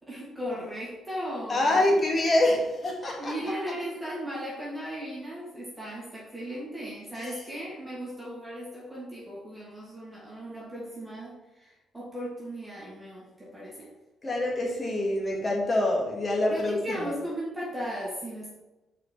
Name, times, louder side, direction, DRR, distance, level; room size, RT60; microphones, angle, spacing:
voice 1, 0.0-1.9 3.2-13.9 16.5-18.5, equal, 15° right, -6 dB, 2.9 m, -37 dB
voice 2, 1.5-3.3 7.2-7.4 14.2-17.1, left 1 dB, 30° left, -1 dB, 2.1 m, -25 dB
6.3 x 5.1 x 5.6 m, 1.0 s
cardioid pair, 90°, 0 cm